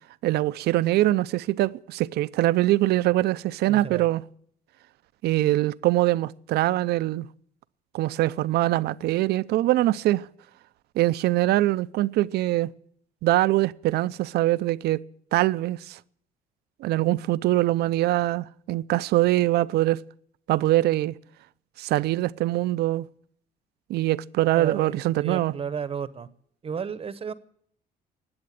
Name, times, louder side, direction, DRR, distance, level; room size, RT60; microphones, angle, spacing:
voice 1, 0.2-4.2 5.2-7.3 7.9-10.3 11.0-12.7 13.2-15.0 15.3-16.0 16.8-20.0 20.5-21.1 21.8-23.1 23.9-25.5, right 16 dB, 70° right, 0.6 m, -23 dB
voice 2, 3.7-4.1 24.5-26.3 26.6-27.3, right 6 dB, 35° right, 0.9 m, -33 dB
19.5 x 7.9 x 9.3 m
cardioid pair, 110°, 17 cm